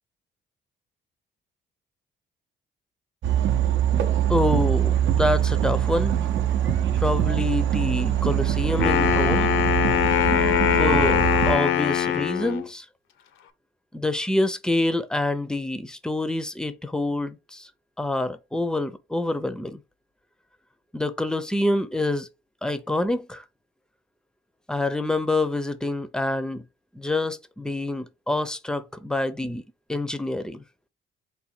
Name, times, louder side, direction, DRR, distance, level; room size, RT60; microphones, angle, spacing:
sound 1, 3.2-11.5, right 10 dB, 70° right, 0.6 m, -23 dB
voice 1, 4.3-6.1 7.0-9.5 10.8-12.9 13.9-17.7 18.0-19.8 20.9-22.3 22.6-23.4 24.7-26.6 26.9-29.6 29.9-30.6, left 2 dB, 5° left, 0.5 m, -26 dB
Wind instrument woodwind instrument, 8.7-12.7, left 11 dB, 80° left, 0.6 m, -22 dB
4.0 x 2.2 x 4.3 m
cardioid pair, 90°, 20 cm